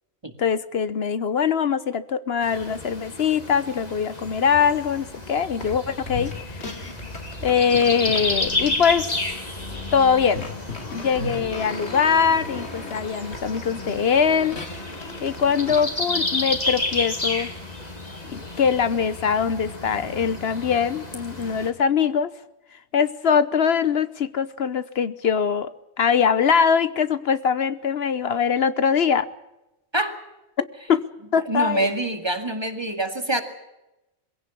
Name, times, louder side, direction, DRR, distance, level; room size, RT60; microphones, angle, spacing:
voice 1, 0.4-6.7 7.4-9.2 9.9-10.5 10.8-14.8 15.2-17.5 18.3-22.3 22.9-25.7 26.0-29.3 30.6-31.0 31.3-31.9, left 6 dB, 70° left, 14 dB, 1.1 m, -22 dB
sound 1, 2.4-21.7, left 2 dB, 40° left, 2.7 m, -32 dB
sound 2, 5.6-5.8 6.1-15.9, left 3 dB, 85° left, 2.8 m, -37 dB
voice 2, 31.5-33.4, right 2 dB, 25° right, 7 dB, 2.2 m, -25 dB
22.5 x 16.5 x 8.4 m, 0.95 s
omnidirectional pair, 1.1 m